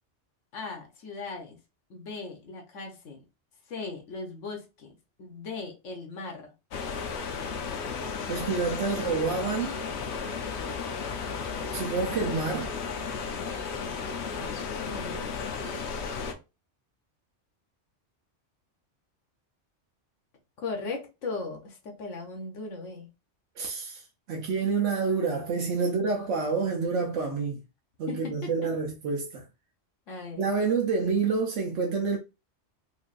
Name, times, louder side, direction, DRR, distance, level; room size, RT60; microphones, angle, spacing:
voice 1, 0.5-1.6 1.9-3.2 3.7-4.9 5.2-6.5 14.3-16.0 20.6-23.1 28.1-28.7 30.1-30.5, left 3 dB, 85° left, 1.3 m, -38 dB
sound 1, 6.7-16.3, left 5 dB, 70° left, 0.9 m, -34 dB
voice 2, 8.3-9.8 11.6-12.7 23.6-27.6 28.0-29.5 30.4-32.2, right 4 dB, 85° right, 1.1 m, -28 dB
4.5 x 2.6 x 2.5 m
omnidirectional pair, 1.2 m